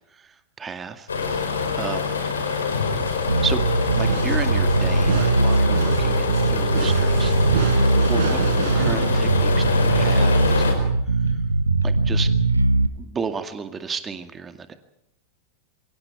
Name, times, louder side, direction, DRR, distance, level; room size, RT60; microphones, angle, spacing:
voice 1, 0.1-1.5 1.7-2.1 3.4-7.8 8.1-8.4 8.7-11.4 11.8-12.3 13.0-14.8, right 5 dB, 20° right, 8 dB, 2.0 m, -33 dB
sound 1, 1.1-10.7, left 5 dB, 70° left, 4.9 m, -25 dB
Bass guitar, 3.3-12.9, right 2 dB, 80° right, 1.1 m, -20 dB
sound 2, 3.9-9.8, right 7 dB, 50° right, 4.6 m, -31 dB
27.5 x 23.5 x 4.7 m, 0.79 s
figure-of-eight pair, 90°, 0 cm